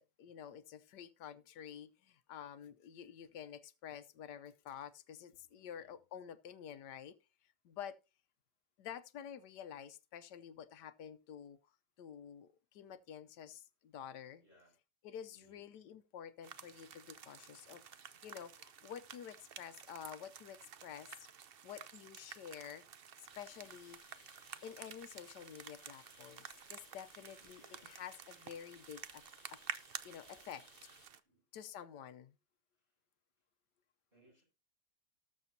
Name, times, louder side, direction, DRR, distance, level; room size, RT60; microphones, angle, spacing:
voice 1, 0.0-7.1 7.6-8.0 8.8-11.6 12.0-14.4 15.0-21.3 21.6-22.8 23.4-24.0 24.6-29.2 29.5-29.6 30.0-30.6 31.5-32.3, left 9 dB, 85° left, 1.4 m, -50 dB
voice 2, 5.5-6.0 14.4-14.8 15.3-15.7 27.1-28.1 30.2-30.7 31.2-31.4 32.8-33.0 34.1-34.4, equal, 30° right, 8.3 m, -69 dB
sound 1, 16.4-31.2, right 8 dB, 55° right, 0.6 m, -52 dB
sound 2, 23.3-31.1, left 4 dB, 30° left, 0.8 m, -65 dB
19.0 x 7.0 x 2.7 m
omnidirectional pair, 1.8 m